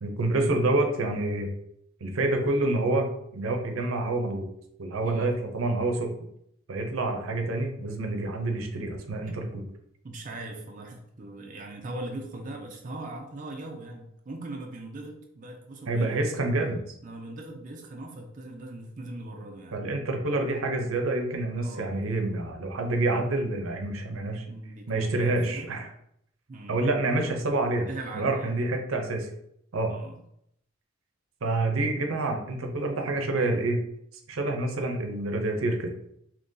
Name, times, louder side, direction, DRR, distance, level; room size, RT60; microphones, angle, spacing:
voice 1, 0.0-1.5 2.0-4.5 4.8-6.1 6.7-9.6 15.9-16.8 19.7-24.4 24.9-25.9 26.7-27.9 28.1-29.3 29.7-29.9 31.4-33.8 34.3-35.9, right 2 dB, 90° right, 4 dB, 0.6 m, -27 dB
voice 2, 5.0-5.4 9.3-9.4 10.0-16.2 17.0-19.8 21.6-21.9 24.5-25.7 26.5-26.8 27.9-28.5 29.9-30.2, right 2 dB, 40° right, 1 dB, 0.5 m, -40 dB
2.8 x 2.7 x 3.7 m, 0.73 s
head